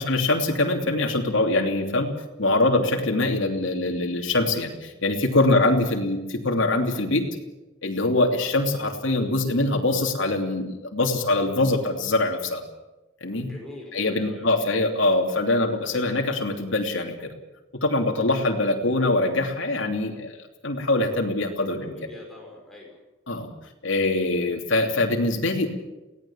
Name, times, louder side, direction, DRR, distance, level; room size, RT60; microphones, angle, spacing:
voice 1, 0.0-2.1 2.4-7.2 7.8-12.6 13.2-13.5 13.9-17.2 17.8-20.3 20.6-21.9 23.3-23.5 23.8-25.7, left 2 dB, 70° left, 2 dB, 3.0 m, -23 dB
voice 2, 13.3-14.6 21.6-23.0, left 2 dB, ahead, -2 dB, 6.0 m, -43 dB
23.0 x 17.5 x 7.4 m, 1.1 s
head